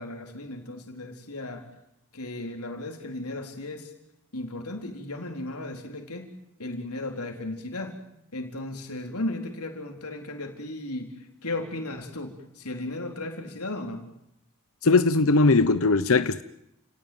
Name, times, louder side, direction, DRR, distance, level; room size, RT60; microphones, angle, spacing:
voice 1, 0.0-1.7 2.1-3.9 4.3-6.3 6.6-8.0 8.3-14.0, left 2 dB, 80° left, 3 dB, 4.1 m, -35 dB
voice 2, 14.8-16.4, left 3 dB, 65° left, 12 dB, 0.9 m, -20 dB
30.0 x 18.0 x 9.5 m, 0.81 s
head